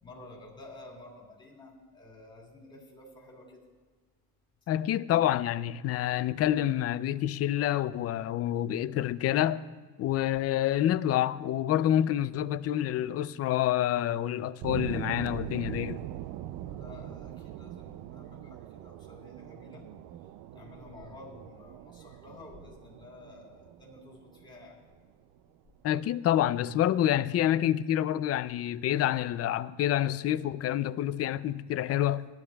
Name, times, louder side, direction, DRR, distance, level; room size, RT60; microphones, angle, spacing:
voice 1, 0.0-3.6 16.6-19.9 20.5-24.8, left 2 dB, 15° left, 3.6 m, -51 dB
voice 2, 4.7-9.6 10.0-16.0 25.8-32.3, left 12 dB, 45° left, 0.4 m, -27 dB
sound 1, 14.6-25.4, right 13 dB, 80° right, 0.5 m, -42 dB
22.0 x 13.0 x 2.3 m
cardioid pair, 170°, 35 cm